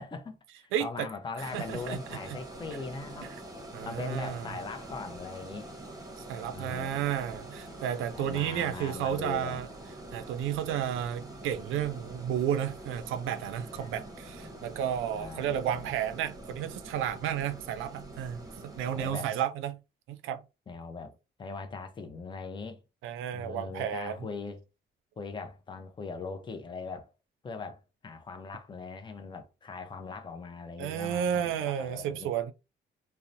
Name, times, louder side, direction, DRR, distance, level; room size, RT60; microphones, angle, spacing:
voice 1, 0.0-3.3 3.8-5.7 6.5-7.0 8.1-9.6 13.8-14.7 15.1-15.9 18.9-19.3 20.7-21.1 21.4-22.8 23.3-24.6 25.2-27.1 27.4-32.3, left 4 dB, 25° left, 0.6 m, -40 dB
voice 2, 0.7-1.1 1.5-2.0 3.7-4.5 6.3-9.7 10.1-19.8 20.1-20.4 23.0-24.3 30.8-32.5, right 9 dB, 90° right, 0.4 m, -32 dB
sound 1, 1.4-19.1, right 1 dB, 20° right, 0.9 m, -45 dB
2.8 x 2.1 x 2.5 m
cardioid pair, 90°, 20 cm